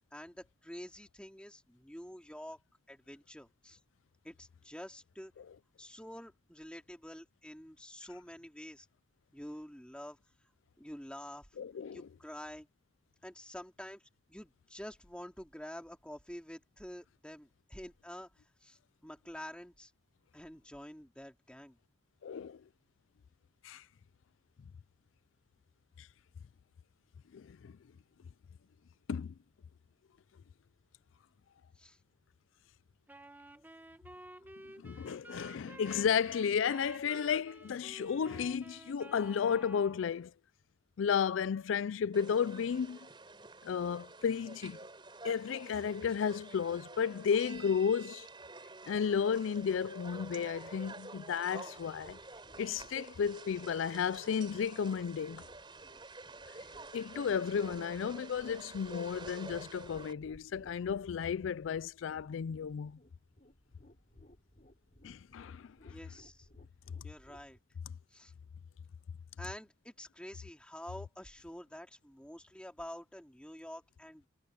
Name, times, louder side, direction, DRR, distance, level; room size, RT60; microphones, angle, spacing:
voice 1, 0.1-2.6 2.9-3.8 4.2-5.3 5.8-8.9 9.3-10.2 10.8-11.5 11.9-12.7 13.2-14.0 14.3-18.3 18.6-19.9 20.3-21.8 31.8-32.0 65.9-66.5 67.0-67.6 68.1-68.3 69.4-74.3, equal, 5° left, 2.7 m, -48 dB
voice 2, 11.6-12.1 22.2-22.6 23.6-23.8 26.0-26.1 27.3-27.8 29.1-29.3 34.8-40.3 41.0-43.0 43.6-44.8 45.2-48.3 48.9-52.2 52.6-55.4 56.9-63.0 65.0-65.9, left 7 dB, 85° left, 0.4 m, -33 dB
Wind instrument woodwind instrument, 33.1-40.0, right 1 dB, 10° right, 1.6 m, -52 dB
sound 1, 42.1-60.1, right 3 dB, 25° right, 4.1 m, -50 dB
sound 2, 51.8-67.6, left 1 dB, 40° left, 4.2 m, -61 dB
head